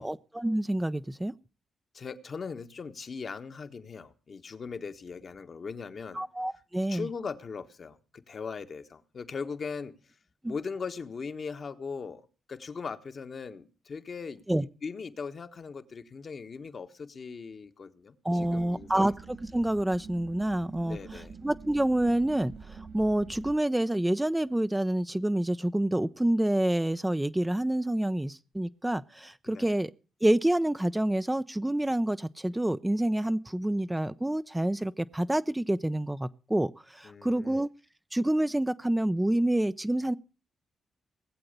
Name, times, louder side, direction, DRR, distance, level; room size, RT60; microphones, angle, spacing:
voice 1, 0.0-1.3 6.1-7.1 10.4-10.5 14.5-14.6 18.2-21.0 21.4-29.9 30.2-37.7 38.1-40.1, right 1 dB, 10° right, 0.6 m, -28 dB
voice 2, 1.9-6.2 6.9-10.1 10.5-19.1 20.8-21.3 29.5-29.7 37.0-37.6, left 5 dB, 50° left, 1.4 m, -39 dB
sound 1, 18.4-23.5, right 5 dB, 60° right, 2.4 m, -47 dB
19.0 x 7.8 x 6.7 m
supercardioid pair, 60°, 0 cm